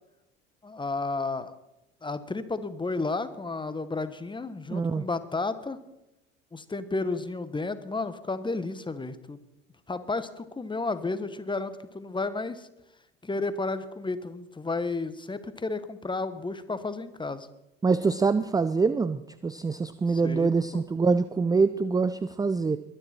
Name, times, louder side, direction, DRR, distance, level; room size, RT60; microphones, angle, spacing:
voice 1, 0.6-1.5 2.0-5.8 6.5-9.4 9.9-12.7 13.2-17.5 20.2-20.8, left 3 dB, 15° left, 12 dB, 1.3 m, -32 dB
voice 2, 4.7-5.0 17.8-22.8, right 4 dB, 10° right, 14 dB, 0.5 m, -25 dB
22.0 x 10.0 x 4.4 m, 0.90 s
hypercardioid pair, 65°, 33 cm